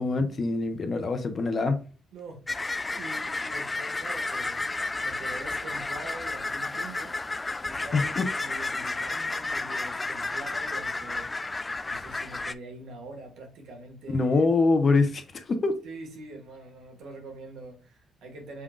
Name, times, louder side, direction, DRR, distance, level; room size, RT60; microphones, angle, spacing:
voice 1, 0.0-1.8 7.9-8.2 14.1-15.7, left 3 dB, 45° left, 1.0 m, -24 dB
voice 2, 2.1-11.3 11.9-14.5 15.8-18.6, right 2 dB, 80° right, 1.9 m, -44 dB
sound 1, 2.5-12.5, left 3 dB, 20° left, 0.3 m, -32 dB
5.6 x 3.8 x 2.5 m
cardioid pair, 90°, 0 cm